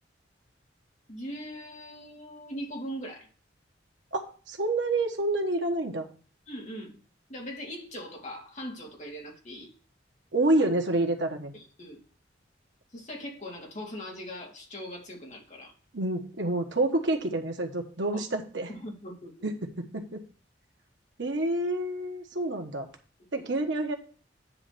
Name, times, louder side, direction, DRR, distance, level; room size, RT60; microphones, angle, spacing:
voice 1, 1.1-3.3 6.5-7.0 7.3-9.7 11.5-12.0 12.9-15.7 18.7-19.5 23.4-23.5, equal, 40° left, -1 dB, 2.3 m, -40 dB
voice 2, 4.1-6.1 10.3-11.5 15.9-18.7 19.4-20.2 21.2-22.9 23.3-23.9, right 2 dB, 70° right, 3 dB, 1.4 m, -28 dB
9.7 x 3.3 x 6.7 m, 0.40 s
head